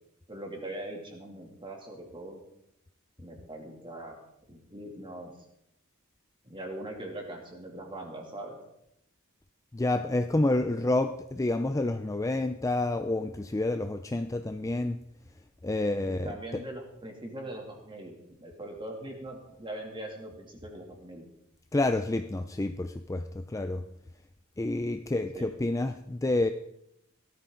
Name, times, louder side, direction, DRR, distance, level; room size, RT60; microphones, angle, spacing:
voice 1, 0.3-2.4 3.2-4.2 4.5-5.3 6.4-8.6 16.1-18.1 18.4-21.2 25.3-25.5, right 1 dB, 20° right, 1 dB, 2.7 m, -41 dB
voice 2, 9.7-15.0 15.6-16.6 21.7-23.8 24.6-26.5, left 2 dB, 15° left, 8 dB, 0.4 m, -29 dB
17.5 x 13.0 x 3.9 m, 0.80 s
head